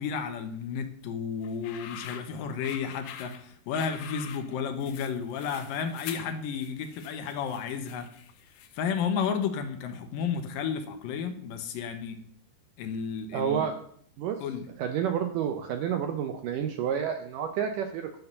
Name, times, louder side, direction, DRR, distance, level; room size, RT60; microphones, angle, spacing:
voice 1, 0.0-8.1 8.8-12.2 12.8-13.7 14.4-14.7, left 6 dB, 70° left, 7 dB, 2.4 m, -32 dB
sound 1, 1.4-9.0, left 9 dB, 90° left, 2.9 m, -46 dB
voice 2, 13.3-13.8 14.2-14.4 14.8-18.2, right 8 dB, 80° right, 6 dB, 1.9 m, -29 dB
11.0 x 4.6 x 6.6 m, 0.63 s
omnidirectional pair, 4.5 m